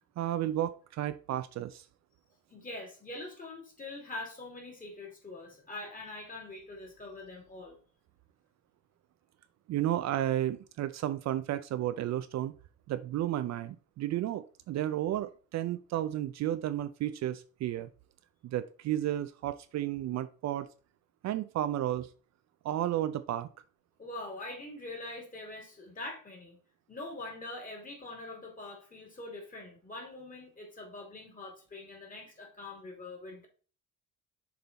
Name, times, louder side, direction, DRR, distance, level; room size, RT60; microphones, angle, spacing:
voice 1, 0.2-1.8 9.7-12.5 12.9-17.9 18.4-20.7 21.2-22.1 22.6-23.5, right 12 dB, 55° right, 0.5 m, -32 dB
voice 2, 2.5-7.8 24.0-26.6 26.9-33.5, left 2 dB, 25° left, 2.6 m, -44 dB
6.9 x 4.0 x 4.1 m
cardioid pair, 120°, 32 cm